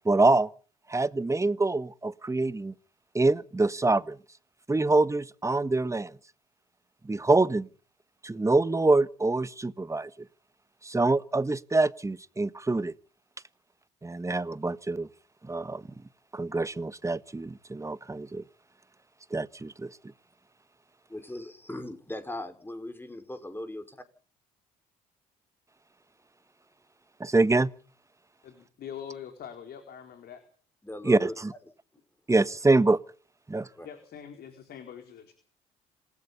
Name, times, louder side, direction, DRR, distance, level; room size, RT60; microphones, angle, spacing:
voice 1, 0.0-0.5 0.9-2.7 3.1-4.2 4.7-6.1 7.0-7.7 8.2-10.1 10.8-12.9 14.0-15.1 15.4-15.8 16.3-18.4 19.3-19.9 27.2-27.7 31.0-31.5 32.3-33.0 33.5-33.7, right 2 dB, 15° right, 1.4 m, -25 dB
voice 2, 21.1-23.9 30.8-31.3 33.8-33.9, left 1 dB, 10° left, 5.3 m, -38 dB
voice 3, 28.4-30.4 33.8-35.3, left 8 dB, 55° left, 4.5 m, -43 dB
27.0 x 19.5 x 5.4 m
hypercardioid pair, 55°, 19 cm